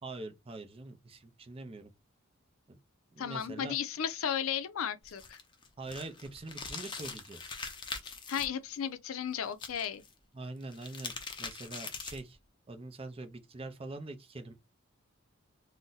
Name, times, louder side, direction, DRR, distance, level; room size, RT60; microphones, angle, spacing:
voice 1, 0.0-1.9 2.7-2.8 3.1-3.8 5.8-7.6 10.3-12.4 12.7-14.5, right 2 dB, 25° right, 0.5 m, -44 dB
voice 2, 3.2-5.4 8.0-10.0, left 8 dB, 85° left, 0.5 m, -35 dB
sound 1, 5.0-8.5 9.5-10.1 10.6-12.3, left 4 dB, 25° left, 0.5 m, -42 dB
2.6 x 2.1 x 3.8 m
head